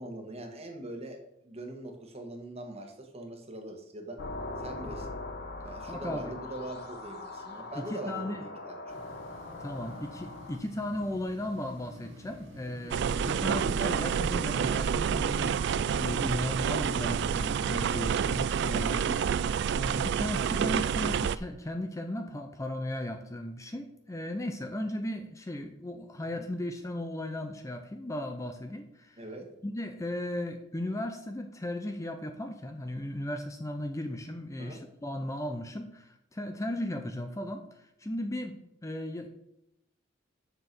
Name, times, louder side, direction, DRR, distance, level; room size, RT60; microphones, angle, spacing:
voice 1, 0.0-4.2 4.6-5.2 5.6-9.1 13.3-13.5 26.2-26.4 29.2-29.5 34.6-34.8, right 1 dB, 30° right, 4 dB, 1.5 m, -42 dB
sound 1, 4.2-10.6, left 2 dB, 55° left, 1.2 m, -41 dB
voice 2, 5.9-6.3 7.8-8.4 9.6-15.5 16.0-19.3 19.7-29.2 29.6-39.3, left 1 dB, 15° left, 6 dB, 0.6 m, -36 dB
sound 2, 8.9-17.7, left 1 dB, 85° right, 2.3 m, -47 dB
sound 3, 12.9-21.4, right 7 dB, 60° right, 0.3 m, -28 dB
6.9 x 6.7 x 6.0 m, 0.81 s
head